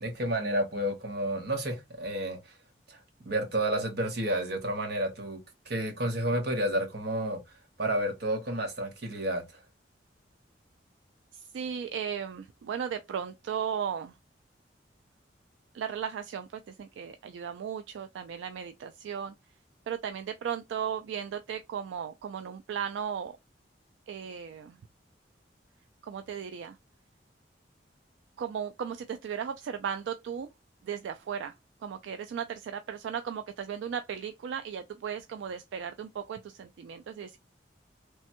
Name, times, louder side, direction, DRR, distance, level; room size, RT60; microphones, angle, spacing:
voice 1, 0.0-2.4 2.9-7.4 7.8-9.4, right 1 dB, 60° right, 1.0 m, -30 dB
voice 2, 11.3-14.1 15.7-19.4 19.9-23.4 24.1-24.8 26.0-26.8 28.4-30.5 30.8-31.6 31.8-37.4, right 7 dB, 85° right, 0.3 m, -36 dB
3.2 x 2.1 x 2.9 m
head